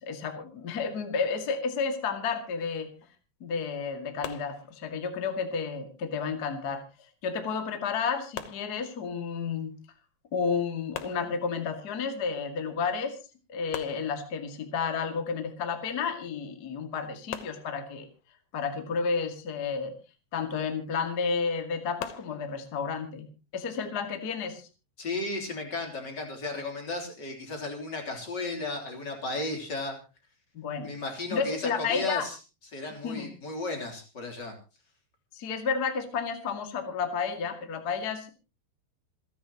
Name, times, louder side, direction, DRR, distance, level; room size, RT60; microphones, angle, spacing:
voice 1, 0.0-2.9 3.4-6.8 7.2-9.7 10.3-13.2 13.5-18.1 18.5-19.9 20.3-23.2 23.5-24.7 30.5-30.9 31.3-32.3 33.0-33.3 35.3-38.3, left 5 dB, 50° left, 6 dB, 1.1 m, -31 dB
sound 1, 4.2-5.2 8.4-9.4 10.9-11.9 13.7-14.7 17.3-18.3 22.0-22.6, left 10 dB, 85° left, 2.0 m, -42 dB
voice 2, 25.0-30.0 30.8-32.4 32.7-34.5, left 2 dB, 25° left, 3 dB, 3.1 m, -34 dB
27.5 x 10.5 x 3.0 m, 0.32 s
omnidirectional pair, 5.6 m